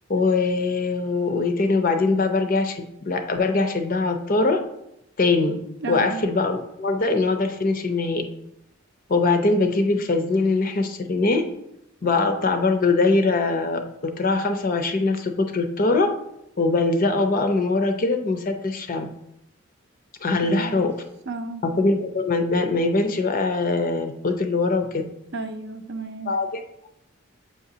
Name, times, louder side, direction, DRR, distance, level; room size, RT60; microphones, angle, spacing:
voice 1, 0.1-4.6 5.2-5.6 5.9-8.2 9.1-11.5 12.0-16.1 16.6-19.1 20.2-20.9 21.6-25.0 26.3-26.9, left 3 dB, 40° left, 6 dB, 0.5 m, -22 dB
voice 2, 5.8-6.2 20.4-20.8 21.3-21.6 25.3-26.4, right 3 dB, 55° right, 7 dB, 0.5 m, -33 dB
7.3 x 4.9 x 2.7 m, 0.83 s
head